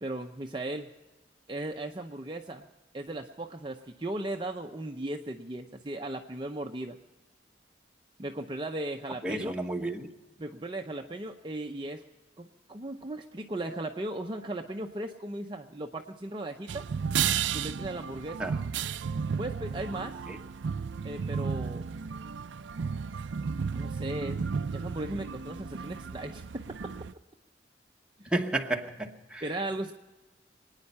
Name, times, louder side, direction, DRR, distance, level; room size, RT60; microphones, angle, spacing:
voice 1, 0.0-0.9 1.5-2.6 2.9-7.0 8.2-9.6 10.4-12.0 12.4-16.9 17.5-18.5 19.4-20.2 21.0-21.9 23.7-24.4 24.7-26.6 28.2-28.3 29.4-29.9, right 1 dB, 25° right, 3 dB, 0.7 m, -37 dB
voice 2, 9.2-10.1 18.4-18.5 20.3-20.4 28.3-29.4, right 2 dB, 5° right, 2 dB, 1.1 m, -31 dB
sound 1, 16.7-27.1, right 6 dB, 80° right, 0.5 m, -33 dB
25.5 x 9.7 x 5.5 m, 1.1 s
head